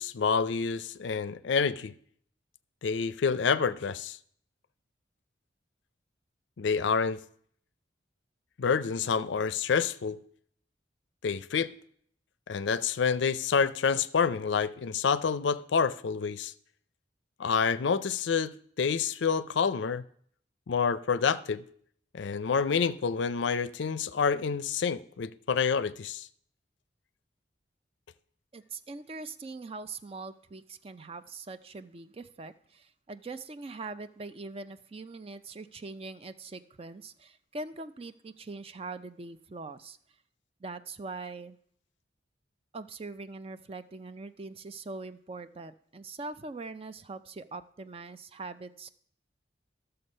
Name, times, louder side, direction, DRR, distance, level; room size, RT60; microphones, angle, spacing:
voice 1, 0.0-1.9 2.8-4.2 6.6-7.2 8.6-10.2 11.2-11.7 12.5-16.5 17.4-20.0 20.7-21.6 22.1-26.3, left 6 dB, 75° left, 0.5 m, -28 dB
voice 2, 28.5-40.0 40.6-41.6 42.7-48.9, right 3 dB, 30° right, 0.4 m, -42 dB
13.0 x 6.7 x 5.4 m
head